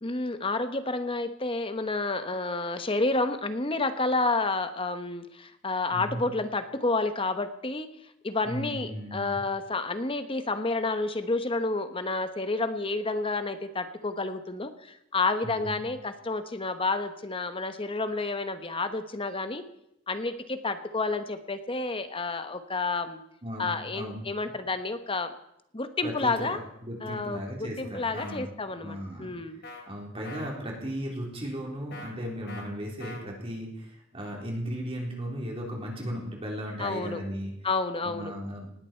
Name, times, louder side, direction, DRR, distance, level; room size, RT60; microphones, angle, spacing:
voice 1, 0.0-7.9 8.2-19.6 20.1-23.2 23.6-25.3 25.7-26.6 27.0-29.6 36.8-37.2 37.6-38.3, left 3 dB, 25° left, 9 dB, 1.2 m, -30 dB
voice 2, 5.9-6.2 8.4-9.4 15.4-15.8 23.4-24.2 26.0-29.3 29.9-37.5 38.0-38.7, equal, 30° right, -1 dB, 3.9 m, -36 dB
sound 1, 28.1-28.4 29.6-29.8 30.2-30.5 31.9-32.1 32.5-32.7 33.0-33.2, left 2 dB, 55° left, 3.0 m, -42 dB
19.5 x 16.0 x 4.6 m, 0.78 s
head